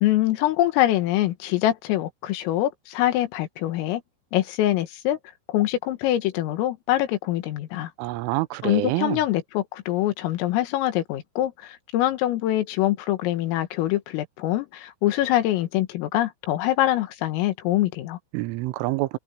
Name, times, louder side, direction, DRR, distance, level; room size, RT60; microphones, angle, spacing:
voice 1, 0.0-4.0 4.3-5.2 5.5-7.9 8.6-18.2, left 14 dB, 80° left, 4.3 m, -24 dB
voice 2, 8.0-9.2 18.3-19.2, right 18 dB, 80° right, 3.2 m, -27 dB
omnidirectional pair, 5.9 m